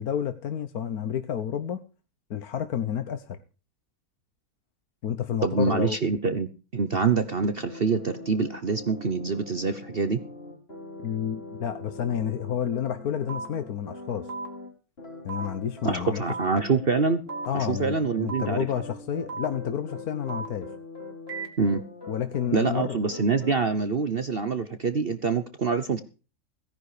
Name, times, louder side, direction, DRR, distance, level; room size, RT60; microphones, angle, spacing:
voice 1, 0.0-1.8 2.3-3.4 5.0-6.0 11.0-14.3 15.2-16.2 17.5-20.7 22.1-23.0, left 9 dB, 70° left, 9 dB, 1.5 m, -30 dB
voice 2, 5.4-10.2 15.8-17.2 17.5-18.7 21.6-21.8 22.5-26.0, right 4 dB, 40° right, 11 dB, 1.1 m, -25 dB
sound 1, 7.6-14.7 15.0-23.6, left 2 dB, 40° left, 4.2 m, -42 dB
sound 2, 13.3-13.5 14.3-14.5 15.3-15.5 16.3-16.5 17.3-17.5 18.3-18.5 19.3-19.5 20.3-20.5 21.3-21.5, right 4 dB, 80° right, 3.3 m, -34 dB
17.0 x 11.0 x 5.0 m, 0.35 s
omnidirectional pair, 1.6 m